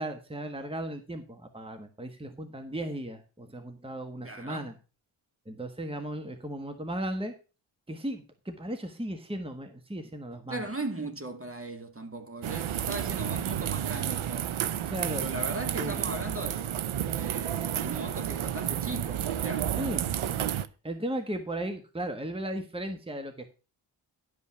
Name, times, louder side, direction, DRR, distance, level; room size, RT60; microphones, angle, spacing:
voice 1, 0.0-4.7 5.5-7.3 7.9-10.7 14.8-15.3 15.7-16.0 19.8-20.0 20.8-23.5, right 1 dB, 10° right, 1.4 m, -36 dB
voice 2, 4.2-4.7 10.5-14.5 15.2-16.7 17.2-19.7, right 2 dB, 30° right, 1.6 m, -38 dB
sound 1, 12.4-20.7, right 10 dB, 90° right, 0.7 m, -31 dB
11.5 x 5.5 x 5.7 m
wide cardioid pair, 80°, 47 cm